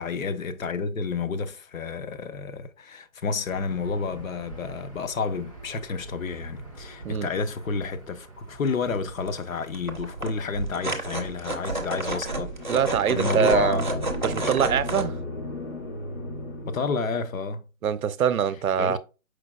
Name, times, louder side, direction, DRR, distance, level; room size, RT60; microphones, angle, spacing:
voice 1, 0.0-12.5 13.1-13.8 16.6-17.6 18.8-19.0, left 4 dB, 70° left, 0.7 m, -30 dB
Aircraft / Engine, 3.5-12.1, right 3 dB, 25° left, 0.5 m, -45 dB
sound 1, 8.7-8.8 9.2-9.4 9.7-15.0, right 2 dB, 35° right, 0.4 m, -31 dB
sound 2, 12.4-17.3, left 2 dB, 90° left, 2.2 m, -35 dB
voice 2, 12.7-13.8 14.2-15.2 17.8-19.0, right 8 dB, 80° right, 0.6 m, -24 dB
4.9 x 4.0 x 2.3 m
hypercardioid pair, 175°, 42 cm